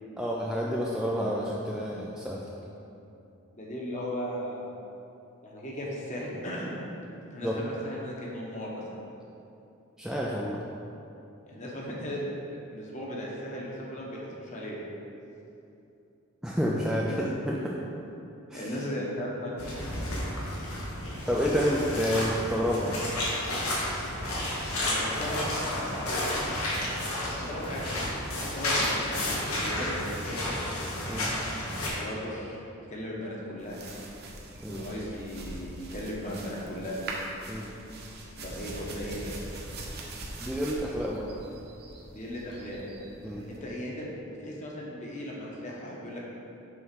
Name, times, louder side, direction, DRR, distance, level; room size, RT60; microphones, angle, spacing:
voice 1, 0.2-2.4 7.4-7.6 10.0-10.6 16.4-17.8 18.5-18.6 21.3-23.0 31.1-31.3 34.6-34.8 37.5-37.7 40.4-41.3 43.2-43.5, equal, 5° right, -4 dB, 0.3 m, -29 dB
voice 2, 3.5-4.6 5.4-6.8 7.3-9.0 11.5-12.2 12.7-14.8 17.0-17.2 18.5-19.5 24.7-26.6 27.4-29.0 29.4-30.5 31.9-32.6 32.9-33.8 34.7-37.0 38.4-39.4 42.1-42.8 43.4-46.2, equal, 35° left, -4 dB, 1.1 m, -37 dB
sound 1, 19.6-31.9, left 1 dB, 85° left, 1.6 m, -31 dB
sound 2, 33.6-43.6, right 2 dB, 45° right, 0.9 m, -42 dB
6.9 x 4.0 x 5.2 m, 2.8 s
head